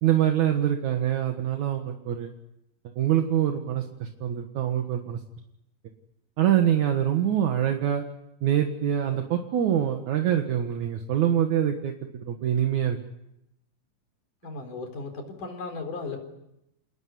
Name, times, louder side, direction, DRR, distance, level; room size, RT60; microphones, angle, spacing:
voice 1, 0.0-2.3 3.0-5.2 6.4-8.0 8.4-13.0, right 10 dB, 65° right, 4 dB, 2.9 m, -25 dB
voice 2, 14.4-16.2, left 3 dB, 75° left, 6 dB, 5.7 m, -36 dB
28.5 x 20.0 x 9.6 m, 0.84 s
omnidirectional pair, 3.7 m